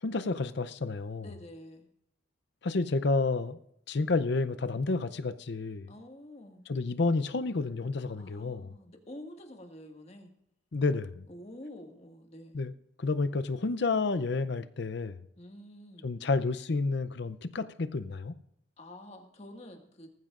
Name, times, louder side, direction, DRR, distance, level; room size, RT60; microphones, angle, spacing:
voice 1, 0.0-1.3 2.6-3.6 3.9-5.9 6.7-8.8 10.7-11.2 12.5-12.7 13.0-15.2 16.0-18.3, left 3 dB, 60° left, 0.6 m, -30 dB
voice 2, 1.2-1.9 5.9-6.6 8.1-10.3 11.3-12.6 15.4-16.1 18.8-20.1, left 1 dB, 35° left, 1.8 m, -48 dB
19.0 x 14.5 x 2.5 m
head